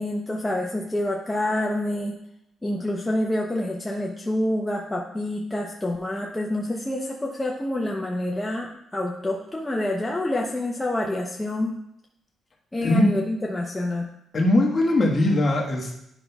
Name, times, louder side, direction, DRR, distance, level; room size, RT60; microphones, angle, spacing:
voice 1, 0.0-2.1 2.6-11.7 12.7-14.1, left 1 dB, 15° left, -1 dB, 0.7 m, -27 dB
voice 2, 12.8-13.1 14.3-15.9, left 1 dB, 35° left, -1 dB, 1.4 m, -20 dB
9.9 x 5.5 x 2.3 m, 0.79 s
cardioid pair, 90°, 0 cm